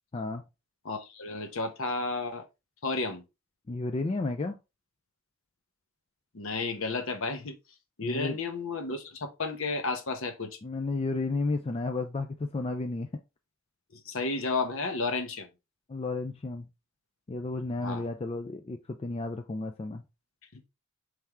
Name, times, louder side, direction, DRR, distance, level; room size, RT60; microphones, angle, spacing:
voice 1, 0.1-0.5 3.7-4.6 8.0-8.4 10.6-13.1 15.9-16.7 17.3-20.0, left 3 dB, 25° left, 0.3 m, -32 dB
voice 2, 0.8-2.4 2.8-3.2 6.3-7.6 8.0-10.6 13.9-15.5 17.8-18.1 20.5-20.7, left 3 dB, 60° left, 0.8 m, -32 dB
4.4 x 3.3 x 3.5 m
head